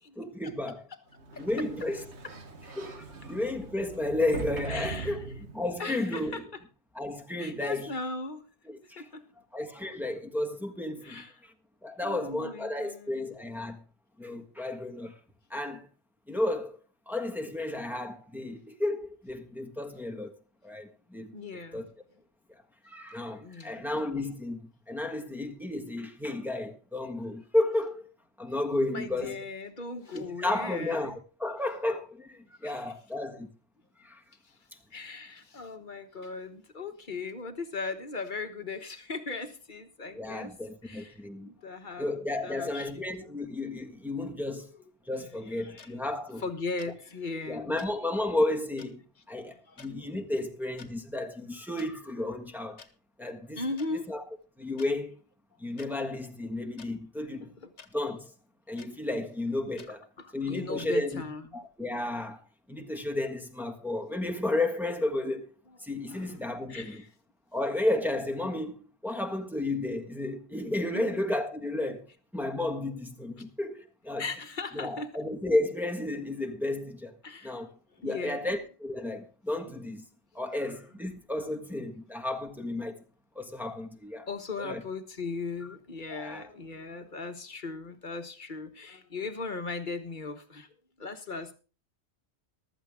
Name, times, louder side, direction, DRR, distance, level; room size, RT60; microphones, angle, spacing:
voice 1, 0.2-0.8 1.4-2.0 2.8-5.2 5.5-6.4 6.9-7.9 8.7-9.0 9.5-11.2 11.8-13.8 14.2-15.1 15.5-15.9 16.3-16.8 17.1-20.3 20.6-21.3 21.7-21.8 22.8-28.1 28.4-29.4 30.1-33.5 34.0-34.2 40.1-41.5 42.0-44.7 45.1-46.4 47.5-49.0 49.3-52.8 53.2-53.6 53.9-54.2 54.6-55.2 55.6-57.5 57.9-58.3 58.7-60.1 60.3-61.2 61.5-62.4 62.7-65.5 65.8-67.0 67.5-72.1 72.3-74.2 74.7-77.1 77.4-77.7 78.0-80.0 80.3-83.0 83.3-84.3 84.6-84.8 86.1-86.4, left 2 dB, ahead, 1.5 m, -32 dB
Sliding door, 1.2-5.9, right 5 dB, 75° right, 1.7 m, -41 dB
voice 2, 4.7-5.3 5.8-6.6 7.4-8.4 9.0-9.2 11.0-11.4 12.0-13.3 21.3-21.9 23.4-24.0 28.9-31.2 32.6-32.9 34.4-34.6 34.9-40.5 40.8-43.4 44.4-44.8 45.1-46.0 46.4-47.8 49.5-49.9 53.6-54.1 57.4-57.7 59.9-61.6 65.7-66.4 66.7-67.1 70.9-71.2 73.4-73.5 74.2-75.1 77.2-77.6 77.9-78.6 84.3-90.7 91.0-91.6, left 3 dB, 45° left, 1.4 m, -38 dB
sound 1, 45.8-45.9 46.8-46.9 47.8-47.9 48.8-48.9 49.8-49.9 50.6-50.9 51.8-51.9 52.8-52.9 53.8-53.9 54.8-54.9 55.8-55.9 56.8-56.9 57.8-57.9 58.8-58.9 59.8-59.9 60.8-60.9, left 6 dB, 80° left, 1.5 m, -50 dB
15.0 x 12.5 x 3.7 m
omnidirectional pair, 1.1 m